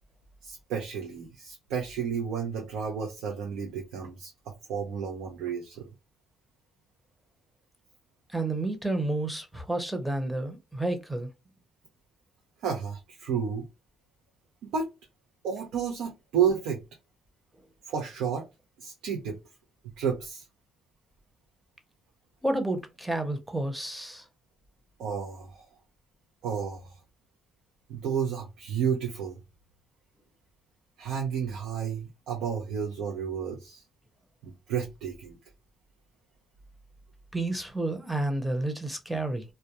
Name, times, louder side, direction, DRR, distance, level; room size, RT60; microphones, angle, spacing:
voice 1, 0.4-5.9 12.6-13.7 14.6-14.9 15.4-16.8 17.8-18.5 18.8-19.4 19.8-20.4 25.0-25.7 26.4-27.0 27.9-29.4 31.0-33.8 34.4-35.4, right 7 dB, 90° right, 0.5 m, -31 dB
voice 2, 8.3-11.3 22.4-24.2 37.3-39.4, right 2 dB, 5° right, 0.6 m, -30 dB
2.2 x 2.1 x 2.8 m
cardioid pair, 90°, 0 cm